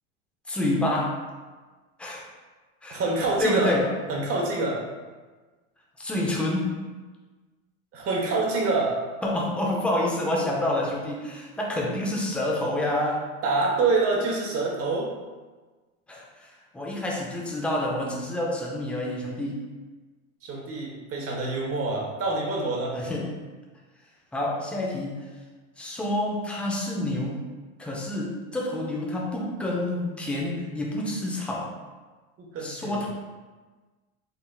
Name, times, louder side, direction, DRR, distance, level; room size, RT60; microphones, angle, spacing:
voice 1, 0.5-1.2 2.0-2.2 2.8-3.1 3.4-4.0 6.0-6.8 9.2-13.3 16.1-19.6 22.9-23.3 24.3-25.2 25.8-27.4 27.8-31.7 32.6-33.1, left 1 dB, 5° left, -2 dB, 0.5 m, -28 dB
voice 2, 2.9-3.8 4.1-4.8 7.9-9.0 13.4-15.1 20.4-23.0 32.5-33.0, right 3 dB, 40° right, -1 dB, 1.0 m, -26 dB
4.0 x 3.9 x 2.3 m, 1.3 s
supercardioid pair, 120°, 37 cm